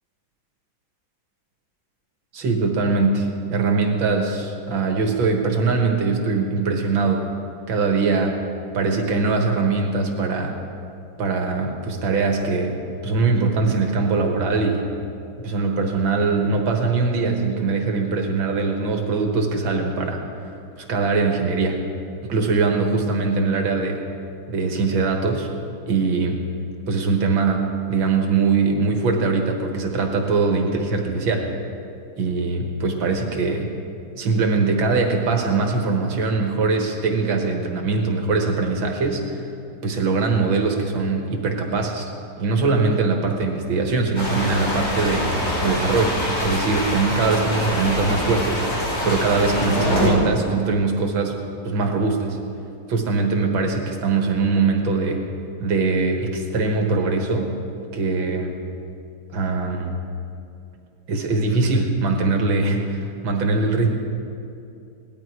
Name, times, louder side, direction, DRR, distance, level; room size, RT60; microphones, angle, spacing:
voice 1, 2.3-7.3 7.7-8.4 8.7-10.6 11.2-14.9 15.4-21.8 22.2-24.0 24.5-25.5 25.9-26.4 26.9-31.5 32.2-33.7 34.2-39.5 39.8-42.1 42.4-45.3 45.6-48.6 49.0-52.4 52.9-55.2 55.6-57.5 57.9-58.5 59.3-60.0 61.1-64.0, right 4 dB, 80° right, 2 dB, 2.2 m, -22 dB
sound 1, 44.1-50.1, left 1 dB, 65° left, 3.9 m, -25 dB
18.0 x 11.5 x 4.7 m, 2.6 s
omnidirectional pair, 2.1 m